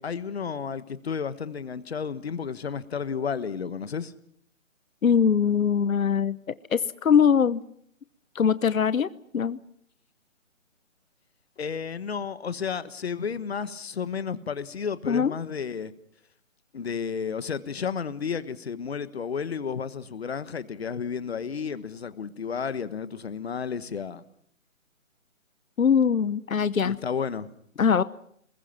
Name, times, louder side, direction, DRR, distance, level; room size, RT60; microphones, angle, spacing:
voice 1, 0.0-4.1 11.6-15.9 16.7-24.2 26.8-27.5, left 6 dB, 50° left, 1.4 m, -32 dB
voice 2, 5.0-6.4 6.7-7.6 8.3-9.6 15.1-15.3 25.8-27.0 27.8-28.0, left 7 dB, 90° left, 0.9 m, -22 dB
28.5 x 21.0 x 5.9 m
hypercardioid pair, 165°, 40 cm